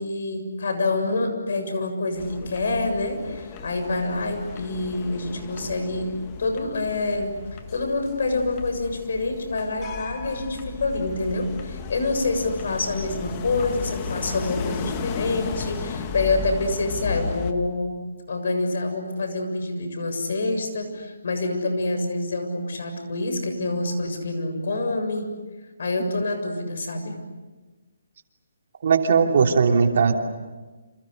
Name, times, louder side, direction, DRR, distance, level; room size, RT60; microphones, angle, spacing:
voice 1, 0.0-7.4 7.7-17.9 18.3-25.3 25.8-27.2, left 2 dB, 60° left, 6 dB, 7.2 m, -27 dB
sound 1, 2.2-17.5, left 5 dB, 25° left, 1.8 m, -35 dB
voice 2, 28.8-30.2, right 5 dB, 55° right, 4 dB, 3.1 m, -18 dB
28.5 x 28.0 x 6.7 m, 1.3 s
hypercardioid pair, 160°, 0 cm